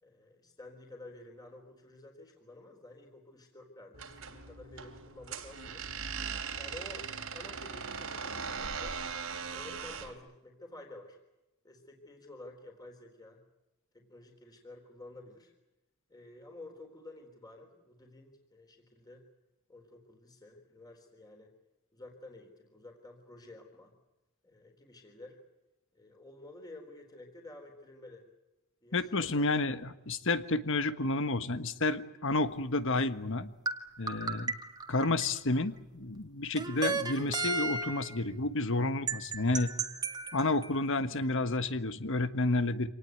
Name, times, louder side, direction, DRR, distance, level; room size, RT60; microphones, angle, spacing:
voice 1, 0.0-5.8 6.6-7.1 7.3-9.0 9.5-11.2 11.6-13.4 13.9-15.5 16.1-19.2 19.7-21.5 21.9-23.9 24.4-25.4 25.9-28.3 28.8-29.6, left 2 dB, 20° left, 2 dB, 3.9 m, -51 dB
sound 1, 3.9-10.1, right 6 dB, 75° right, 3.2 m, -39 dB
voice 2, 28.9-33.5 34.0-34.5 34.9-39.7 40.3-42.9, left 2 dB, 65° left, 11 dB, 1.5 m, -30 dB
sound 2, 33.7-35.6 36.6-38.2 39.1-40.8, right 3 dB, 20° right, 2.0 m, -35 dB
26.5 x 19.0 x 9.4 m, 0.98 s
head